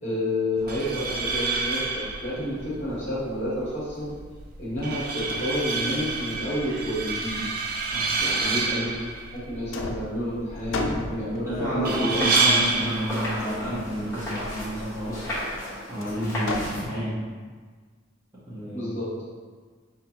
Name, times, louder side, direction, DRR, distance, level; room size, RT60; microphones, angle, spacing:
voice 1, 0.0-4.2 4.6-7.5 8.2-8.9 9.3-12.3 18.7-19.2, left 1 dB, 30° left, -9 dB, 1.4 m, -30 dB
sound 1, 0.6-15.6, right 3 dB, 45° right, 0.4 m, -29 dB
sound 2, 4.8-4.9 5.2-6.2 7.0-8.0 9.0-9.4 9.7-11.7 13.4-13.8 16.0-17.3, left 3 dB, 75° left, 0.4 m, -35 dB
voice 2, 11.4-15.3 15.9-17.2 18.5-18.9, equal, 15° right, -11 dB, 1.0 m, -30 dB
sound 3, 11.8-16.8, equal, 15° left, 1.1 m, -35 dB
5.5 x 2.4 x 2.8 m, 1.5 s
head